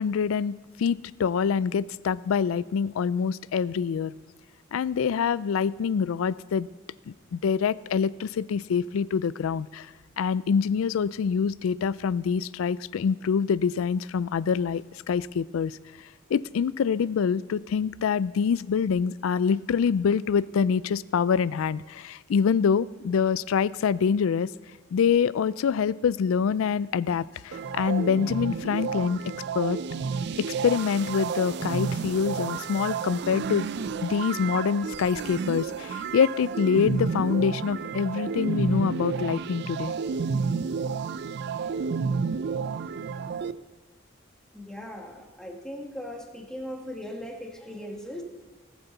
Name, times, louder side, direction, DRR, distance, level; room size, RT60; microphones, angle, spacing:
voice 1, 0.0-4.1 4.7-6.7 7.1-15.8 16.3-24.5 24.9-29.2 29.5-29.8 30.6-33.7 34.0-39.9, left 6 dB, 85° left, 19 dB, 0.3 m, -25 dB
sound 1, 27.5-43.5, right 5 dB, 55° right, 0.4 m, -31 dB
voice 2, 44.5-48.2, left 1 dB, 5° left, 1 dB, 1.4 m, -38 dB
18.5 x 8.0 x 4.1 m, 1.3 s
head